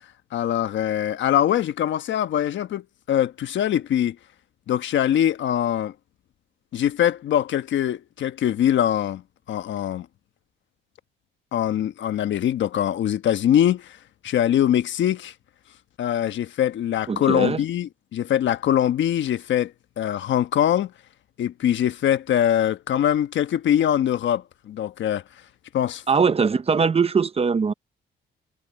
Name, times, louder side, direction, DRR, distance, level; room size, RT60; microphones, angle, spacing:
voice 1, 0.3-4.2 4.7-5.9 6.7-9.2 9.5-10.1 11.5-14.0 14.2-15.3 16.0-20.9 21.4-25.2 25.7-26.0, left 10 dB, 70° left, 1.3 m, -23 dB
voice 2, 17.1-17.6 26.1-27.7, right 5 dB, 30° right, 0.8 m, -21 dB
cardioid pair, 90°, 20 cm